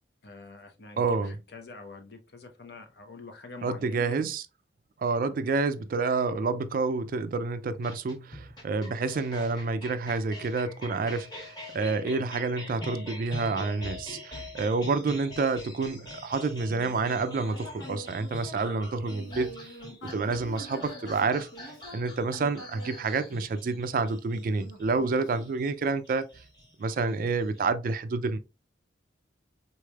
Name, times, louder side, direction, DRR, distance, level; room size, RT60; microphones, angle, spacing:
voice 1, 0.2-4.3 5.2-5.4, left 3 dB, 60° left, 0.8 m, -46 dB
voice 2, 1.0-1.4 3.6-4.4 5.0-19.7 20.0-26.3 26.8-28.4, right 4 dB, 50° right, 0.3 m, -29 dB
sound 1, 7.8-27.6, left 1 dB, 25° left, 1.2 m, -44 dB
Human voice, 16.6-24.0 24.6-26.0, right 1 dB, 90° left, 1.0 m, -46 dB
4.1 x 3.2 x 2.3 m
head